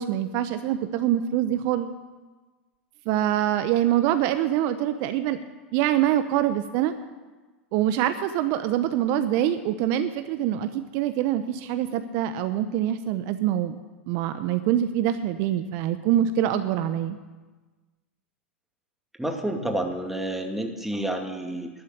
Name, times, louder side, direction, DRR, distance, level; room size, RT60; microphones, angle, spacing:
voice 1, 0.0-2.0 3.1-5.4 5.7-6.9 7.7-13.8 14.1-17.2, right 11 dB, 55° right, 10 dB, 0.9 m, -25 dB
voice 2, 19.2-21.7, right 1 dB, 5° right, 3 dB, 2.4 m, -29 dB
12.0 x 9.8 x 9.8 m, 1.3 s
hypercardioid pair, 95°, 6 cm